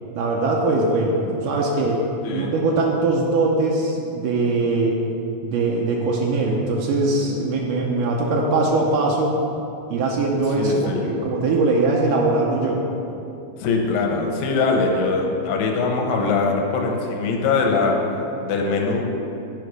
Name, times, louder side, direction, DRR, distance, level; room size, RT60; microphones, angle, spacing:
voice 1, 0.2-2.0 2.3-5.0 5.4-9.4 9.9-12.8, right 2 dB, 85° right, -2 dB, 1.8 m, -21 dB
voice 2, 10.6-11.0 13.6-19.0, left 4 dB, 80° left, 1 dB, 2.9 m, -22 dB
12.0 x 5.0 x 4.8 m, 2.8 s
omnidirectional pair, 4.7 m